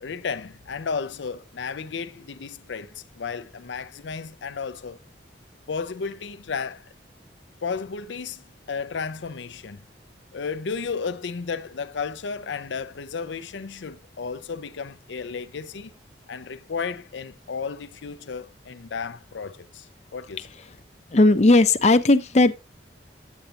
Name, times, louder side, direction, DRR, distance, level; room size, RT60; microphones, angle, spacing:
voice 1, 0.0-5.0 5.7-6.8 7.6-9.8 10.3-15.9 16.3-20.5, left 5 dB, 80° left, 0.5 m, -33 dB
voice 2, 21.1-22.6, left 2 dB, 40° left, 0.6 m, -16 dB
9.0 x 8.2 x 2.8 m
head